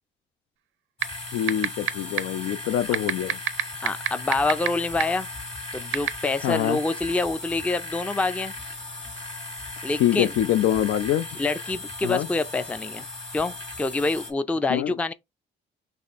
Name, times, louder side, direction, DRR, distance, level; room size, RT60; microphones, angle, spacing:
sound 1, 1.0-14.3, left 2 dB, 30° left, 1.4 m, -37 dB
sound 2, 1.0-1.1 1.5-1.9 2.2-2.3 2.9-4.7 5.0-5.1 5.9-6.1, right 14 dB, 80° right, 0.5 m, -20 dB
voice 1, 1.3-3.4 6.4-6.8 10.0-11.3 12.0-12.3 14.7-14.9, left 11 dB, 80° left, 0.4 m, -24 dB
voice 2, 3.8-5.3 5.7-8.5 9.8-10.3 11.4-13.1 13.3-15.1, left 3 dB, 5° left, 0.3 m, -26 dB
4.2 x 3.2 x 3.4 m
cardioid pair, 90°, 20 cm